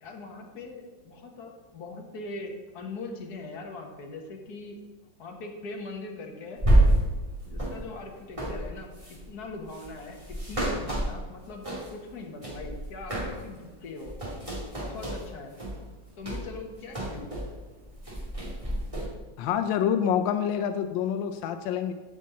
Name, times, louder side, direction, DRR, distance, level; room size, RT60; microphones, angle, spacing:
voice 1, 0.0-4.8 5.2-6.6 7.5-8.9 9.3-11.7 11.9-14.1 14.8-15.5 16.2-17.3, left 3 dB, 60° left, 2 dB, 1.8 m, -41 dB
sound 1, 6.6-12.1 12.4-13.6 13.9-17.6 17.8-19.1, right 1 dB, 15° right, 2.3 m, -28 dB
voice 2, 19.4-21.9, left 8 dB, 90° left, 8 dB, 1.3 m, -27 dB
8.4 x 5.4 x 7.5 m, 1.3 s
omnidirectional pair, 2.0 m